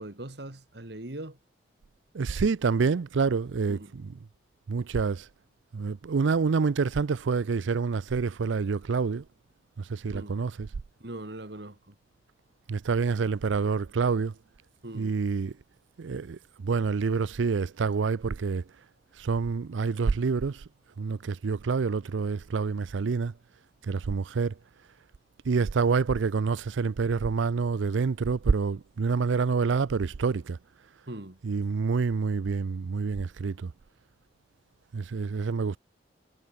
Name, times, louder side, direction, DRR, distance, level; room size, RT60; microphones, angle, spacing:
voice 1, 0.0-1.4 3.7-3.9 10.1-10.4 11.0-11.9 14.8-15.1 31.1-31.4, right 1 dB, 60° right, 2.0 m, -40 dB
voice 2, 2.1-4.2 4.7-5.3 5.7-9.2 9.9-10.7 12.7-14.3 14.9-15.5 16.0-18.6 19.2-20.6 21.0-23.3 23.9-24.5 25.5-30.6 31.4-33.7 34.9-35.8, right 5 dB, 80° right, 0.5 m, -27 dB
head